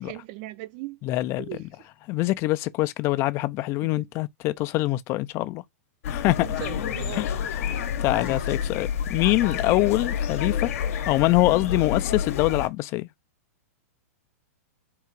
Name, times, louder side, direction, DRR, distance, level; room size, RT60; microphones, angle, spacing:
voice 1, 0.0-1.0 1.4-1.6 3.8-4.1 6.4-7.4 8.1-8.3, right 17 dB, 45° right, 0.5 m, -39 dB
voice 2, 1.0-1.5 2.1-5.6 6.1-6.5 7.1-10.7 11.1-13.1, left 18 dB, 35° left, 0.3 m, -24 dB
sound 1, 6.0-12.7, left 8 dB, 65° left, 0.8 m, -29 dB
3.7 x 2.4 x 4.5 m
hypercardioid pair, 135°, 8 cm